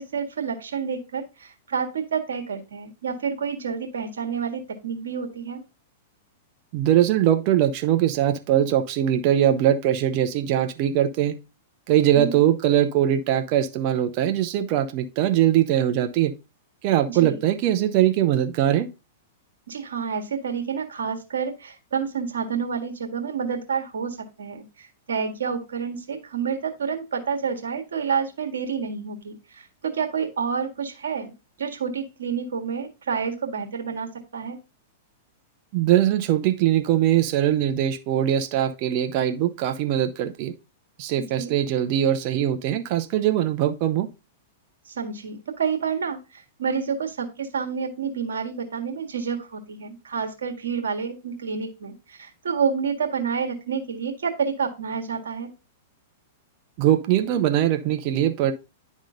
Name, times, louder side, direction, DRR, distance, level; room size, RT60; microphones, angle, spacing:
voice 1, 0.0-5.6 12.1-12.4 17.1-17.5 19.7-31.3 31.6-34.6 41.2-41.5 44.9-55.5, right 6 dB, 85° right, 1.7 m, -29 dB
voice 2, 6.7-11.4 11.9-16.3 16.8-18.9 35.7-40.5 41.0-44.1 56.8-58.5, right 11 dB, 45° right, 0.7 m, -21 dB
10.5 x 3.7 x 3.8 m
hypercardioid pair, 125°, 0 cm